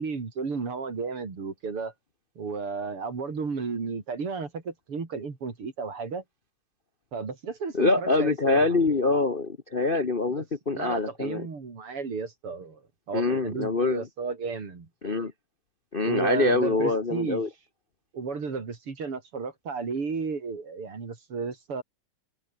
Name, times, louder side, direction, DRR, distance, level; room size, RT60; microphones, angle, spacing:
voice 1, 0.0-1.9 2.4-6.2 7.1-8.7 10.4-10.5 10.7-14.9 16.0-17.4 18.1-21.8, right 4 dB, 50° right, 4.4 m, -33 dB
voice 2, 7.7-11.5 13.1-14.1 15.0-15.3 15.9-17.5, left 3 dB, 85° left, 0.4 m, -25 dB
omnidirectional pair, 3.3 m